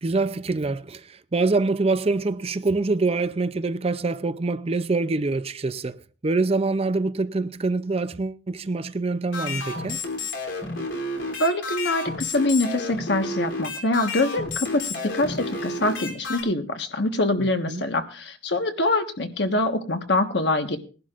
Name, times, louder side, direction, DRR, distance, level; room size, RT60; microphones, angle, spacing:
voice 1, 0.0-10.0 17.4-17.9, right 3 dB, 35° right, 0.6 m, -25 dB
sound 1, 9.3-16.4, left 2 dB, 85° left, 3.3 m, -31 dB
voice 2, 11.4-20.8, left 2 dB, 65° left, 1.4 m, -24 dB
20.5 x 11.5 x 2.5 m
head